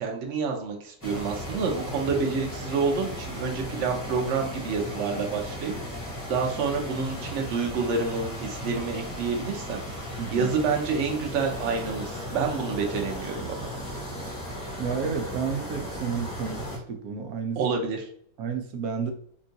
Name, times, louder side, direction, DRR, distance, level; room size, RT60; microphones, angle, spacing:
voice 1, 0.0-9.8 10.3-13.7 17.6-18.1, right 5 dB, 60° right, 1 dB, 0.9 m, -28 dB
sound 1, 1.0-16.8, equal, 15° left, 0.8 m, -36 dB
voice 2, 10.2-10.5 14.7-17.6 18.4-19.1, right 6 dB, 85° right, 4 dB, 1.1 m, -31 dB
3.7 x 2.3 x 2.6 m, 0.63 s
omnidirectional pair, 1.5 m